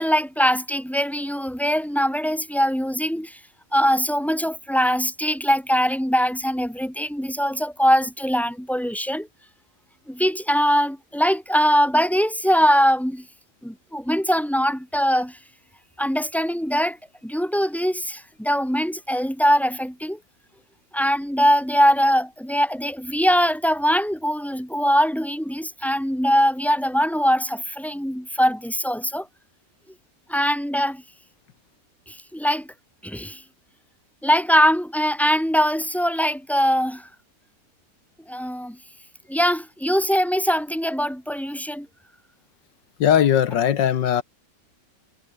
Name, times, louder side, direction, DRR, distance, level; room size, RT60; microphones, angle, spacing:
voice 1, 0.0-3.4 3.7-9.3 10.1-13.2 13.6-15.4 16.0-17.0 17.2-20.2 20.9-29.3 30.3-31.0 32.1-32.7 33.0-33.4 34.2-37.1 38.3-38.8 39.3-41.9, equal, ahead, 6.1 m, -22 dB
voice 2, 43.0-44.2, left 9 dB, 80° left, 1.8 m, -19 dB
omnidirectional pair, 1.9 m